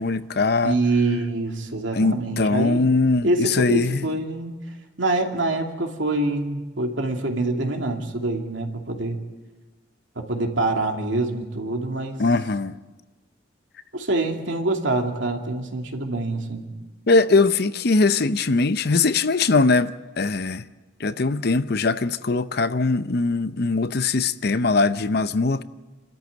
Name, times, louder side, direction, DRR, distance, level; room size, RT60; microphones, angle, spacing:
voice 1, 0.0-0.8 1.9-4.1 12.2-12.7 17.1-20.7 21.0-25.6, left 3 dB, 55° left, 0.7 m, -21 dB
voice 2, 0.6-2.8 3.2-4.6 5.0-9.2 10.2-12.2 13.9-16.7, right 2 dB, 80° right, 2.6 m, -25 dB
27.0 x 13.5 x 9.3 m
head